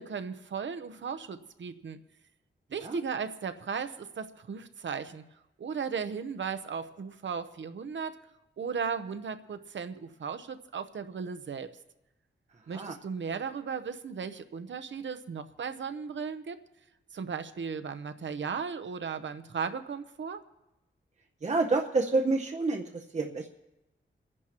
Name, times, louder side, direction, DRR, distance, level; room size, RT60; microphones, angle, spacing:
voice 1, 0.0-2.0 2.7-5.2 5.6-8.2 8.6-11.7 12.7-16.6 17.1-20.4, right 6 dB, 70° right, 9 dB, 0.8 m, -36 dB
voice 2, 21.4-23.5, right 3 dB, 35° right, 3 dB, 0.7 m, -28 dB
28.5 x 11.0 x 3.0 m, 0.97 s
wide cardioid pair, 135°, 20 cm